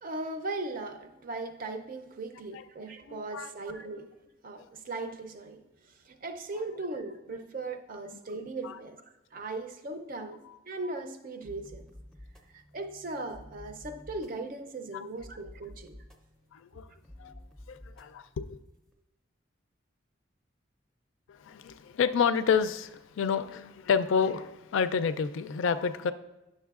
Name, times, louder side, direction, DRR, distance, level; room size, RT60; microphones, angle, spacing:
voice 1, 0.0-4.1 4.4-5.6 6.1-9.0 9.3-11.9 12.5-16.0, right 2 dB, 45° right, 0.5 m, -38 dB
voice 2, 3.1-3.5 8.6-8.8 10.5-10.6 14.9-15.1 16.5-16.9 17.2-17.3 17.7-18.6 21.3-26.1, left 6 dB, 85° left, 0.3 m, -29 dB
sound 1, 11.4-18.9, left 1 dB, ahead, 0.5 m, -52 dB
10.0 x 6.6 x 2.4 m
head